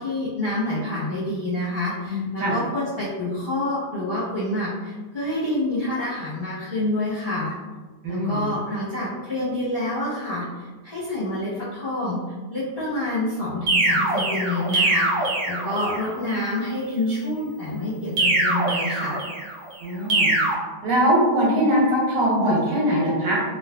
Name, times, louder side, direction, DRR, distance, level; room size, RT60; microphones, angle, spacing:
voice 1, 0.0-7.5 8.1-10.4 10.8-12.2 12.5-19.2, left 1 dB, 40° left, -11 dB, 0.8 m, -27 dB
voice 2, 2.1-2.5 8.0-8.4 19.8-20.3 20.8-23.4, equal, 90° right, -4 dB, 1.6 m, -21 dB
sound 1, 13.7-16.1 18.2-19.5 20.1-20.5, right 2 dB, 65° right, 1.1 m, -22 dB
3.9 x 2.4 x 2.3 m, 1.3 s
omnidirectional pair, 1.8 m